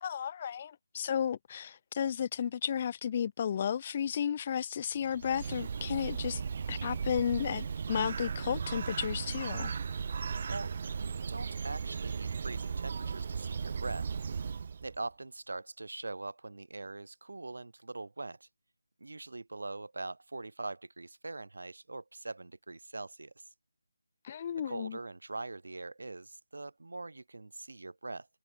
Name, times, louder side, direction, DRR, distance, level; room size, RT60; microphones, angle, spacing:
voice 1, 0.0-6.4 6.7-9.7 24.2-25.0, left 8 dB, 20° left, 0.3 m, -33 dB
Bird, 4.9-15.0, right 6 dB, 30° right, 0.6 m, -36 dB
voice 2, 10.4-14.1 14.8-18.5 19.0-23.4 24.7-28.3, right 2 dB, 70° right, 1.7 m, -42 dB
figure-of-eight pair, 175°, 0 cm